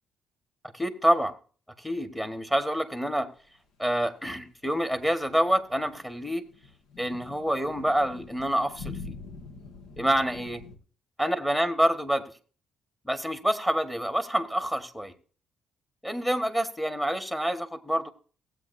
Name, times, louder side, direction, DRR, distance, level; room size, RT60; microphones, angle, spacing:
voice 1, 0.7-1.3 1.8-3.3 3.8-6.4 7.0-9.1 10.0-10.6 11.2-12.3 13.0-15.1 16.0-18.1, equal, 5° left, 9 dB, 1.3 m, -27 dB
sound 1, 5.3-10.8, left 4 dB, 85° left, 1.6 m, -44 dB
17.0 x 8.2 x 2.6 m, 0.40 s
cardioid pair, 90°, 0 cm